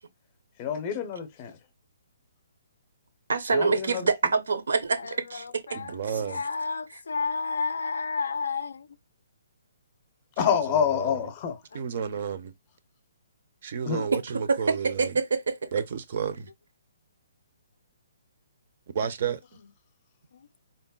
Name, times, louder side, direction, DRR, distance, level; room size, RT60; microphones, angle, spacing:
voice 1, 0.6-1.6 3.5-4.1 10.4-11.6 13.8-14.1, left 8 dB, 25° left, 0.6 m, -27 dB
voice 2, 3.3-5.6 6.1-6.2 14.1-14.2 14.5-15.7, right 4 dB, 85° right, 0.7 m, -26 dB
voice 3, 5.0-8.9, left 4 dB, 80° left, 0.3 m, -31 dB
voice 4, 5.7-6.4 10.5-11.2 11.7-12.5 13.6-15.1 15.7-16.5 18.9-19.4, right 7 dB, 45° right, 0.4 m, -32 dB
3.8 x 2.1 x 2.2 m
hypercardioid pair, 165°, 0 cm